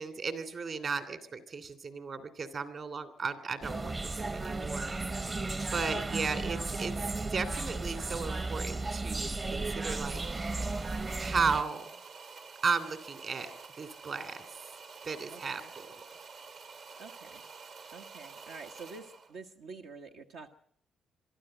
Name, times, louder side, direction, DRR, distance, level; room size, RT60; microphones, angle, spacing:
voice 1, 0.0-5.0 5.7-10.2 11.2-11.9 12.6-13.5 13.8-14.4 15.0-16.0, right 5 dB, 50° right, 12 dB, 2.8 m, -35 dB
sound 1, 3.6-11.6, right 3 dB, 30° right, 0.8 m, -35 dB
sound 2, 9.8-19.4, right 5 dB, 65° right, 2.1 m, -49 dB
voice 2, 15.3-15.7 17.0-17.4 17.9-20.5, right 4 dB, 85° right, 3 dB, 1.4 m, -48 dB
23.5 x 13.5 x 9.0 m, 0.64 s
cardioid pair, 90°, 0 cm